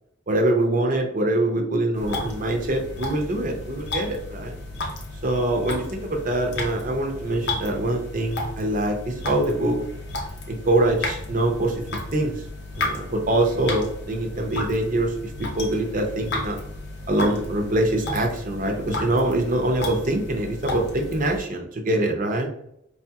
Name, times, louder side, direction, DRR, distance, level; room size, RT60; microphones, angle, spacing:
voice 1, 0.3-4.6 5.2-9.8 10.5-11.8 12.1-12.4 12.8-15.1 15.5-16.6 17.1-22.5, right 1 dB, 40° right, 2 dB, 0.6 m, -24 dB
sound 1, 1.9-21.4, left 2 dB, 55° left, 0.7 m, -33 dB
4.8 x 2.8 x 2.3 m, 0.77 s
head